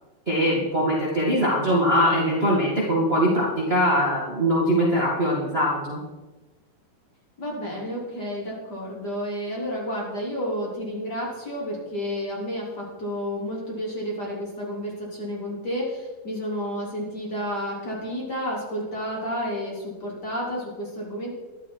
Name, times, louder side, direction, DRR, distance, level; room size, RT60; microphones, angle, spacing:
voice 1, 0.3-6.0, equal, 20° right, -5 dB, 2.0 m, -22 dB
voice 2, 7.4-21.3, equal, 30° left, -4 dB, 3.8 m, -31 dB
14.0 x 11.5 x 4.8 m, 1.2 s
omnidirectional pair, 4.2 m